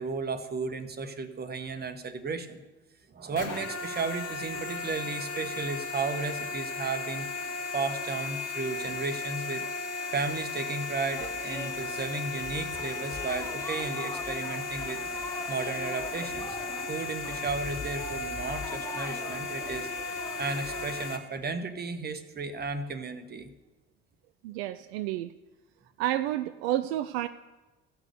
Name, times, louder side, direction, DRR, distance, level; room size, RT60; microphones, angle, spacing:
voice 1, 0.0-2.6 3.1-7.3 7.7-9.6 10.1-15.0 15.5-16.5 16.9-23.5, right 4 dB, 30° right, 9 dB, 1.1 m, -34 dB
sound 1, 3.3-21.2, left 3 dB, 80° left, 1.1 m, -35 dB
sound 2, 11.1-21.1, left 2 dB, 10° left, 0.7 m, -42 dB
voice 2, 24.4-25.3 26.0-27.3, right 13 dB, 65° right, 11 dB, 0.5 m, -30 dB
15.5 x 6.1 x 6.8 m, 1.1 s
figure-of-eight pair, 50°, 33 cm